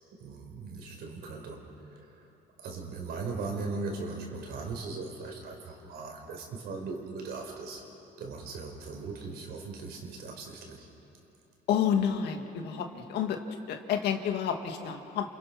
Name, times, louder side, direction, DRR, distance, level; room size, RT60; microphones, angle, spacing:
voice 1, 0.1-2.3 2.6-7.8 8.2-10.9, right 3 dB, 75° right, 1 dB, 5.2 m, -39 dB
voice 2, 11.7-13.4 13.7-15.3, left 8 dB, 75° left, 5 dB, 2.1 m, -29 dB
28.5 x 28.0 x 6.1 m, 2.9 s
cardioid pair, 110°, 17 cm